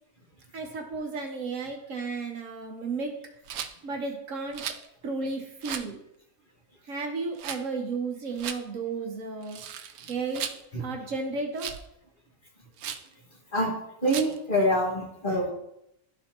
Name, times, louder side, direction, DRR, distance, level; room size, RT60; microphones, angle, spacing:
voice 1, 0.5-3.1 3.8-4.6 5.0-6.0 6.8-9.6 10.1-10.4 10.8-11.7, right 4 dB, 65° right, 2 dB, 1.3 m, -33 dB
Rattle, 3.4-3.7 4.5-4.9 5.6-5.9 7.3-7.6 8.4-8.6 9.4-10.6 11.6-11.9 12.8-13.1 14.1-14.4, right 8 dB, 85° right, 1.1 m, -36 dB
voice 2, 14.0-15.5, equal, 35° left, -3 dB, 1.8 m, -25 dB
12.0 x 4.3 x 2.9 m, 0.81 s
omnidirectional pair, 1.5 m